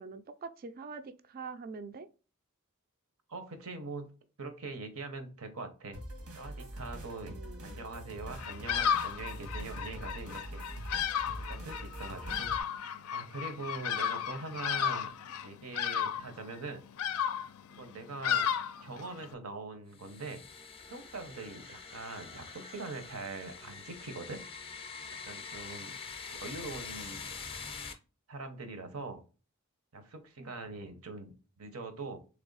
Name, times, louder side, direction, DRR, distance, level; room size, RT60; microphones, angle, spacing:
voice 1, 0.0-2.1 7.3-7.9 12.3-12.8 30.4-30.5, right 4 dB, 45° right, 0.4 m, -45 dB
voice 2, 3.3-4.1 4.4-6.0 6.3-10.6 11.4-12.5 12.8-15.1 15.4-16.8 17.7-18.5 18.8-20.5 20.9-24.4 25.1-26.0 26.3-27.3 28.3-29.2 29.9-32.2, right 3 dB, 70° right, 0.8 m, -43 dB
sound 1, 5.9-12.6, equal, 85° right, 1.4 m, -43 dB
Bird vocalization bird call bird song, 8.4-19.3, left 8 dB, 75° left, 0.4 m, -34 dB
sound 2, 19.9-27.9, left 5 dB, 25° left, 0.5 m, -45 dB
3.4 x 3.4 x 3.9 m
head